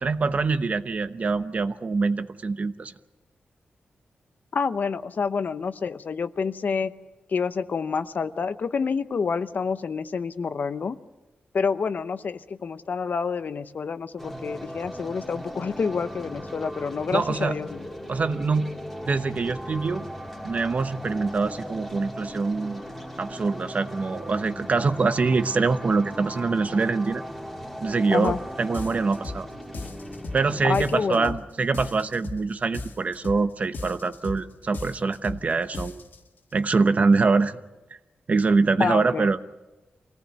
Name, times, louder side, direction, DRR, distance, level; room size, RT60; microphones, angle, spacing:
voice 1, 0.0-2.9 17.1-17.5 18.1-18.7 19.0-20.1 20.4-22.8 23.2-27.2 27.8-29.5 30.3-36.0 36.5-37.6 38.3-39.4, right 4 dB, 40° right, 11 dB, 0.9 m, -24 dB
voice 2, 4.5-6.9 7.3-11.0 11.5-17.8 28.1-28.4 30.6-31.4 38.8-39.3, left 5 dB, 55° left, 12 dB, 0.8 m, -28 dB
sound 1, 14.2-31.1, equal, ahead, 2.7 m, -38 dB
sound 2, 28.2-28.4 28.7-29.4 29.7-30.4 30.7-31.4 31.7-32.4 32.7-33.4 33.7-34.4 34.7-35.4 35.7-36.2, left 3 dB, 70° left, 2.2 m, -36 dB
24.5 x 18.0 x 8.1 m, 1.1 s
wide cardioid pair, 130°, 4 cm